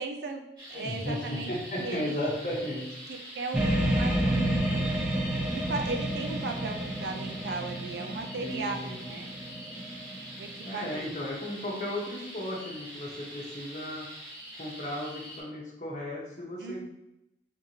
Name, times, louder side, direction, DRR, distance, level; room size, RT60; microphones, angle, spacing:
voice 1, 0.0-1.5 1.8-2.2 3.1-4.9 5.5-9.3 10.4-11.2 16.6-16.8, right 3 dB, 70° right, 4 dB, 0.4 m, -37 dB
sound 1, 0.6-15.4, right 1 dB, 25° right, 1.4 m, -45 dB
voice 2, 0.7-2.9 8.4-9.0 10.6-14.1 14.6-16.8, left 1 dB, 45° left, -2 dB, 0.9 m, -35 dB
sound 2, 3.5-10.9, right 1 dB, 5° right, 0.3 m, -30 dB
3.4 x 3.2 x 2.7 m, 0.85 s
head